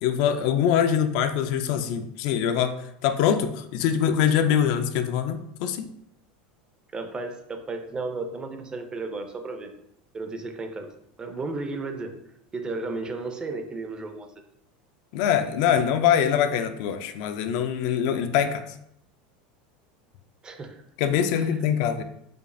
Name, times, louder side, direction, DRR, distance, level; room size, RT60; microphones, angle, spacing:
voice 1, 0.0-2.8 3.0-5.9 15.1-18.6 21.0-22.0, left 8 dB, 60° left, 8 dB, 0.3 m, -23 dB
voice 2, 6.9-9.7 10.1-10.9 11.2-12.2 12.5-14.3 20.4-20.8 21.3-21.6, right 3 dB, 20° right, 6 dB, 0.4 m, -34 dB
5.0 x 2.3 x 2.5 m, 0.76 s
supercardioid pair, 140°, 5 cm